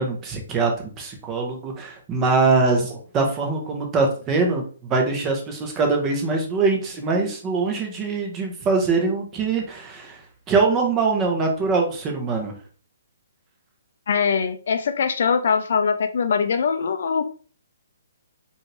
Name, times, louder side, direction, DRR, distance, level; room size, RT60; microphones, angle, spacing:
voice 1, 0.0-10.2 10.5-12.5, right 4 dB, 20° right, 2 dB, 1.0 m, -23 dB
voice 2, 14.1-17.2, left 6 dB, 60° left, 9 dB, 0.4 m, -22 dB
4.0 x 2.7 x 3.3 m, 0.39 s
hypercardioid pair, 150°, 0 cm